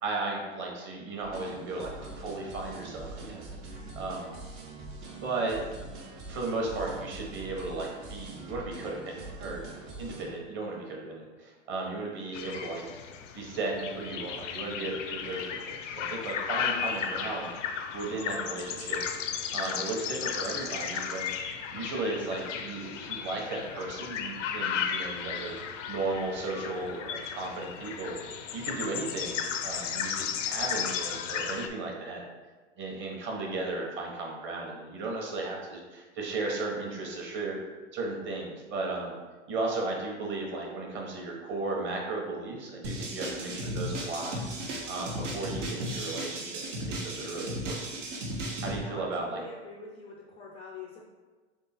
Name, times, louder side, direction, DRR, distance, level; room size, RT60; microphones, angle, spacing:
voice 1, 0.0-4.4 5.2-5.9 6.2-9.6 10.0-12.8 13.3-17.5 17.9-19.0 19.5-21.3 21.7-25.6 25.9-32.2 32.8-37.6 37.9-39.2 39.5-44.5 44.9-47.9 48.6-49.4, right 3 dB, 30° right, -1 dB, 1.1 m, -35 dB
sound 1, 1.2-10.3, right 2 dB, 55° right, 1.1 m, -43 dB
sound 2, 12.3-31.7, left 7 dB, 85° left, 0.6 m, -35 dB
sound 3, 42.8-48.8, right 1 dB, 80° right, 1.3 m, -35 dB
voice 2, 48.8-51.0, left 4 dB, 15° left, -2 dB, 0.4 m, -45 dB
3.6 x 3.2 x 4.3 m, 1.4 s
supercardioid pair, 130°, 36 cm